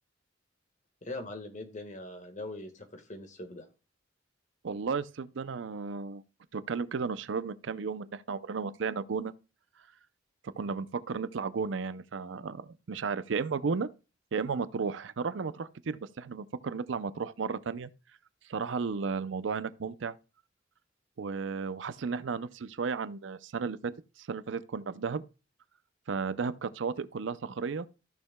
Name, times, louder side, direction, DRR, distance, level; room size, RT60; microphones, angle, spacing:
voice 1, 1.0-3.6, left 2 dB, 40° left, 1.5 m, -41 dB
voice 2, 4.6-6.2 6.5-9.3 10.4-13.9 14.3-17.9 18.5-20.1 21.2-25.2 26.1-27.9, right 5 dB, 70° right, 0.5 m, -34 dB
14.5 x 6.5 x 2.2 m
head